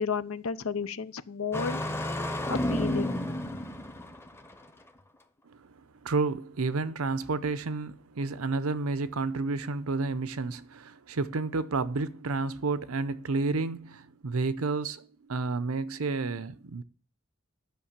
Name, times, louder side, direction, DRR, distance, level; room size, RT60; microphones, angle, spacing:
voice 1, 0.0-1.8 2.5-3.2, left 5 dB, 75° left, 0.7 m, -32 dB
Engine starting, 1.5-4.5, left 1 dB, 10° left, 0.8 m, -31 dB
voice 2, 6.0-16.8, right 3 dB, 85° right, 0.7 m, -31 dB
11.5 x 6.0 x 7.3 m
head